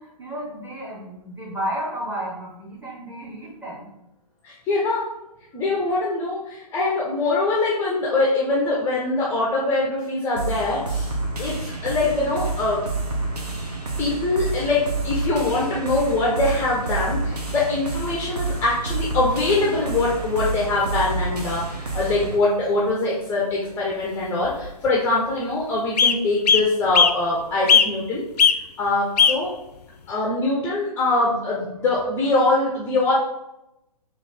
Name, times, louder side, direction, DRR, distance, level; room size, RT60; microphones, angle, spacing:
voice 1, 0.0-3.9, right 1 dB, 10° right, -4 dB, 0.8 m, -32 dB
voice 2, 4.4-5.1 5.5-12.8 13.6-13.7 14.0-29.5 30.1-33.1, left 2 dB, 10° left, -4 dB, 0.5 m, -23 dB
sound 1, 10.4-22.4, right 3 dB, 75° right, 1.1 m, -29 dB
sound 2, 16.5-17.4 18.6-18.7 18.9-19.0 19.7-20.0 20.3-20.4 20.7-20.9 21.2-21.5 22.4-22.5 22.9-23.0 24.1-24.2 24.4-24.9 25.4-25.5 26.0-26.2 26.4-27.2 27.7-28.1 28.4-28.6 29.2-29.4 30.1-30.2, left 6 dB, 80° left, 0.4 m, -18 dB
3.1 x 2.9 x 4.0 m, 0.89 s
figure-of-eight pair, 135°, 21 cm